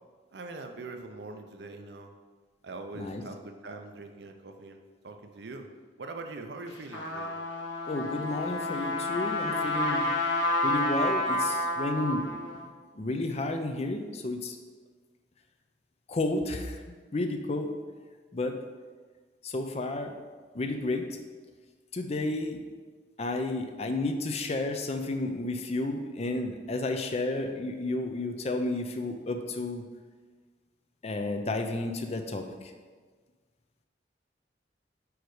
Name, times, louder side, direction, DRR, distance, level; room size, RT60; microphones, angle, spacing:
voice 1, 0.3-2.1 2.6-5.7 6.0-7.3, right 3 dB, 65° right, 5 dB, 0.6 m, -42 dB
Trumpet, 6.7-12.6, left 2 dB, 90° left, 1.1 m, -30 dB
voice 2, 7.9-10.0 10.6-12.3 12.9-14.6 16.1-16.8 17.1-17.7 18.3-18.6 19.4-20.1 20.5-21.0 21.9-22.6 23.2-29.8 31.0-32.7, left 2 dB, 35° left, 6 dB, 0.5 m, -31 dB
5.1 x 4.7 x 4.8 m, 1.4 s
head